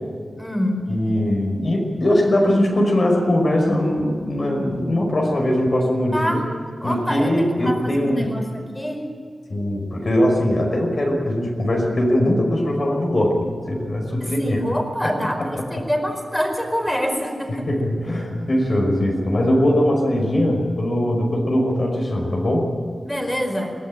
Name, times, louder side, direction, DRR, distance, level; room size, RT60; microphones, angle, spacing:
voice 1, 0.3-0.9 6.1-6.4 6.8-9.0 14.2-17.7 23.0-23.7, equal, 5° left, 4 dB, 4.7 m, -26 dB
voice 2, 0.9-6.4 6.8-8.3 9.5-14.6 15.0-15.1 15.6-15.8 17.7-22.7, left 1 dB, 50° left, 0 dB, 5.6 m, -21 dB
22.5 x 18.5 x 9.0 m, 2.1 s
wide cardioid pair, 105°, 0 cm